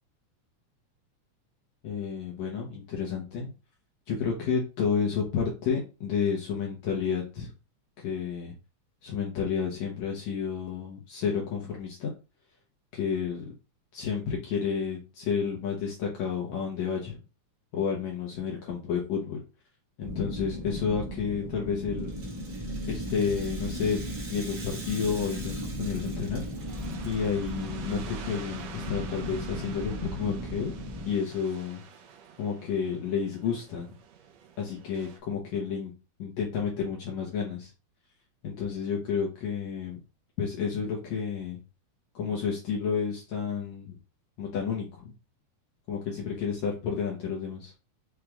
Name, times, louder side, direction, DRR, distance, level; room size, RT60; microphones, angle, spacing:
voice 1, 1.8-3.5 4.1-7.5 8.0-8.5 9.0-12.1 12.9-13.5 13.9-17.2 17.7-19.4 20.0-22.1 22.9-24.0 24.3-26.8 27.1-30.7 31.1-31.8 32.4-33.9 34.6-35.9 36.2-37.7 38.4-40.0 40.4-41.6 42.1-44.0 44.4-45.1 45.9-47.7, left 6 dB, 70° left, -3 dB, 2.2 m, -31 dB
sound 1, 20.0-31.1, equal, 25° right, 0.7 m, -36 dB
Rattle (instrument), 22.0-27.5, right 3 dB, 45° right, 1.1 m, -46 dB
sound 2, 25.4-35.2, right 7 dB, 70° right, 1.8 m, -48 dB
5.9 x 2.5 x 3.4 m, 0.31 s
omnidirectional pair, 3.4 m